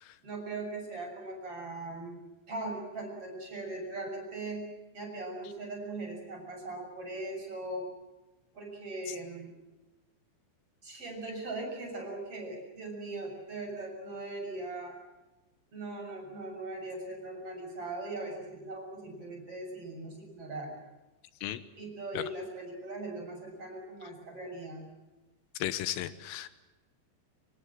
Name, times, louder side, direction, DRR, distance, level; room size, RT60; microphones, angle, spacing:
voice 1, 0.2-2.2 2.5-4.6 4.9-7.9 8.5-9.5 10.8-15.0 15.7-20.7 21.8-24.8, right 2 dB, 30° right, 2 dB, 7.4 m, -40 dB
voice 2, 25.6-26.5, left 13 dB, 85° left, 13 dB, 3.7 m, -34 dB
25.5 x 24.5 x 7.7 m, 1.0 s
omnidirectional pair, 5.8 m